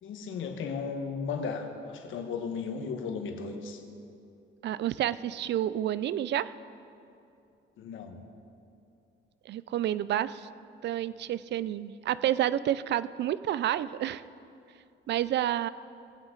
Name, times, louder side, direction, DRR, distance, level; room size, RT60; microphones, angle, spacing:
voice 1, 0.0-3.8 7.8-8.2, left 5 dB, 80° left, 5 dB, 1.3 m, -35 dB
voice 2, 4.6-6.5 9.5-10.5 10.8-14.2 15.1-15.7, right 12 dB, 60° right, 17 dB, 0.4 m, -29 dB
19.0 x 9.0 x 3.9 m, 2.6 s
cardioid pair, 90°, 20 cm